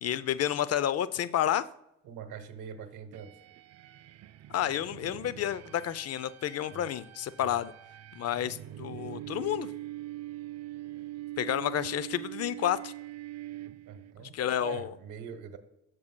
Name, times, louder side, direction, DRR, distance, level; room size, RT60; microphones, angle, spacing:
voice 1, 0.0-1.6 4.5-7.7 8.1-9.7 11.4-12.9 14.2-14.9, left 11 dB, 55° left, 0.5 m, -30 dB
voice 2, 2.0-3.4 6.7-6.9 7.4-7.6 13.9-15.6, right 7 dB, 85° right, 1.0 m, -43 dB
sound 1, 3.1-14.2, right 15 dB, 55° right, 0.5 m, -43 dB
13.0 x 6.4 x 2.2 m
cardioid pair, 90°, 30 cm